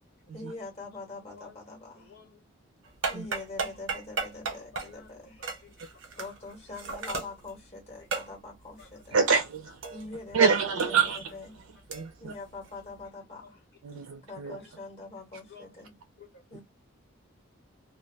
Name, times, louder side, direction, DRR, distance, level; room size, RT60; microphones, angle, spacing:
voice 1, 0.3-2.1 3.1-5.5 6.2-9.3 9.9-10.4 10.7-10.9 11.3-11.5 12.2-13.6 14.3-15.9 16.5-16.6, left 3 dB, 30° left, 1.3 m, -43 dB
voice 2, 1.3-1.6 1.9-2.4 4.3-5.9 8.0-8.1 8.8-9.2 11.0-11.1 11.9-12.0 12.8-12.9 13.3-13.6 14.4-14.7 15.5-15.9 16.2-16.6, left 5 dB, 50° left, 0.7 m, -54 dB
sound 1, 2.8-10.4 10.6-13.1, right 4 dB, 65° right, 0.8 m, -37 dB
voice 3, 9.1-9.8 10.3-12.3 13.8-14.6 16.5-16.6, right 5 dB, 80° right, 0.4 m, -27 dB
2.2 x 2.0 x 3.3 m
head